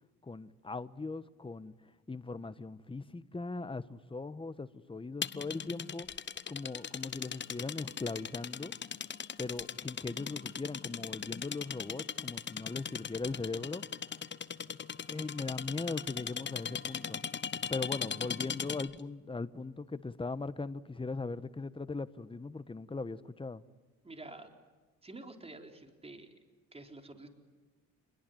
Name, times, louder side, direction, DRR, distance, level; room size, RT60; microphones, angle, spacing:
voice 1, 0.2-1.7 2.1-6.1 6.5-8.7 9.4-13.8 15.1-17.2 17.7-23.6, left 3 dB, 15° left, 1.2 m, -39 dB
sound 1, 5.2-19.0, left 7 dB, 35° left, 1.0 m, -39 dB
voice 2, 24.0-24.5 25.0-26.3 26.7-27.3, right 2 dB, 20° right, 4.1 m, -48 dB
28.0 x 22.0 x 9.3 m
cardioid pair, 90°, 30 cm